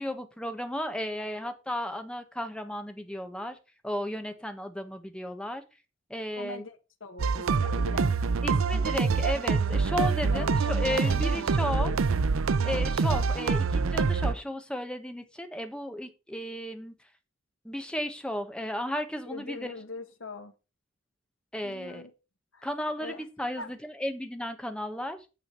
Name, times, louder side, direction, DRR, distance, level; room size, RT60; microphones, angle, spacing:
voice 1, 0.0-3.6 3.8-5.6 6.1-6.6 8.4-11.9 12.6-16.9 17.6-19.7 21.5-22.0 22.6-25.2, left 1 dB, 5° left, 1.2 m, -34 dB
voice 2, 6.4-8.1 10.2-12.0 19.3-20.5 21.6-22.1 22.5-22.7 23.0-23.2 23.6-23.7, left 3 dB, 70° left, 1.4 m, -41 dB
sound 1, 7.2-14.3, right 4 dB, 85° right, 0.5 m, -26 dB
9.3 x 4.9 x 7.0 m
head